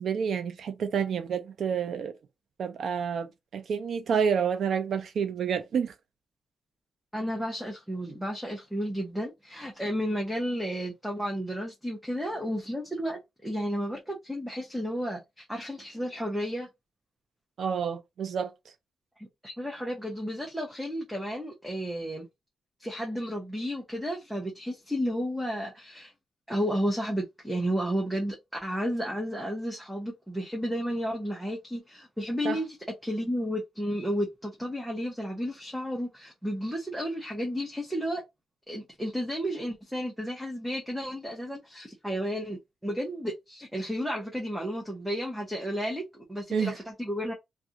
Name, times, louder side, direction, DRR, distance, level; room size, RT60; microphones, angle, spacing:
voice 1, 0.0-2.1 2.6-5.9 17.6-18.5 32.4-32.6 46.5-46.7, right 7 dB, 65° right, 0.5 m, -29 dB
voice 2, 7.1-16.7 19.2-22.2 22.8-26.1 26.5-28.4 28.6-32.8 33.0-38.2 38.7-47.3, equal, 5° right, 0.7 m, -32 dB
2.4 x 2.3 x 2.7 m
cardioid pair, 130°, 0 cm